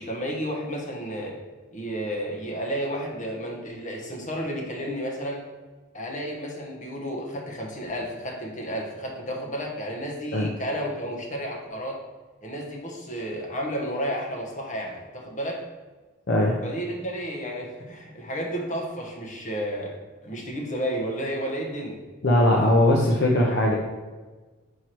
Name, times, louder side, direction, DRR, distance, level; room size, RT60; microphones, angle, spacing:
voice 1, 0.0-1.4 1.7-5.4 5.9-12.0 12.4-15.6 16.6-19.9 20.2-22.0, equal, 35° left, -1 dB, 1.1 m, -32 dB
voice 2, 16.3-16.6 22.2-23.8, left 1 dB, 55° left, -2 dB, 0.7 m, -20 dB
4.6 x 4.6 x 4.5 m, 1.3 s
head